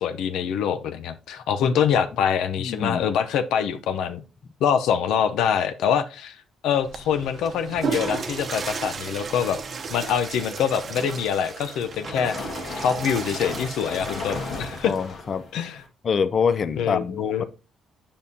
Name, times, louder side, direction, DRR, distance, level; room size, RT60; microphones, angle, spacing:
voice 1, 0.0-4.2 4.6-6.4 6.6-9.6 9.9-12.3 12.8-14.9 15.5-15.8 16.8-17.4, left 8 dB, 85° left, 0.6 m, -24 dB
voice 2, 2.6-3.1 14.8-15.4 16.0-17.4, left 6 dB, 45° left, 0.5 m, -25 dB
Water / Toilet flush, 6.8-15.1, right 5 dB, 40° right, 0.8 m, -34 dB
sound 1, 10.9-15.9, left 4 dB, 60° left, 1.6 m, -36 dB
8.6 x 5.4 x 2.8 m
cardioid pair, 120°, 0 cm